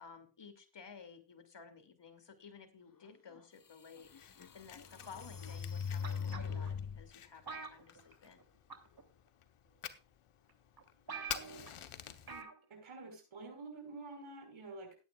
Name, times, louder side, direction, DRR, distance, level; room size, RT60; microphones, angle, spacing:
voice 1, 0.0-4.1 4.5-8.4, left 5 dB, 60° left, 7 dB, 2.7 m, -54 dB
sound 1, 3.3-3.4 4.0-7.1, left 7 dB, 40° left, 1.2 m, -41 dB
Fire, 4.0-12.4, left 9 dB, 80° left, 1.2 m, -50 dB
sound 2, 6.0-6.7 7.5-8.4 8.7-9.0 9.9-10.0 10.5-10.6 10.8-10.9 11.1-11.7 12.3-12.6 12.9-13.0, right 5 dB, 45° right, 3.0 m, -46 dB
voice 2, 12.2-15.0, right 3 dB, 70° right, 3 dB, 5.5 m, -49 dB
19.0 x 9.3 x 2.4 m, 0.32 s
cardioid pair, 40°, 49 cm